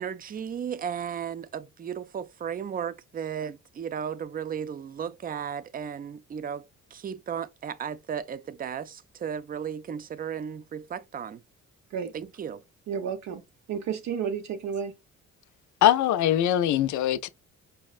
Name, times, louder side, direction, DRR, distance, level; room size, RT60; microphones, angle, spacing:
voice 1, 0.0-11.4 12.1-12.6, right 8 dB, 30° right, 0.4 m, -35 dB
voice 2, 12.9-13.4 13.7-14.9, right 7 dB, 65° right, 0.7 m, -31 dB
voice 3, 15.8-17.3, left 11 dB, 75° left, 0.4 m, -22 dB
5.4 x 2.1 x 2.3 m
cardioid pair, 90°, 30 cm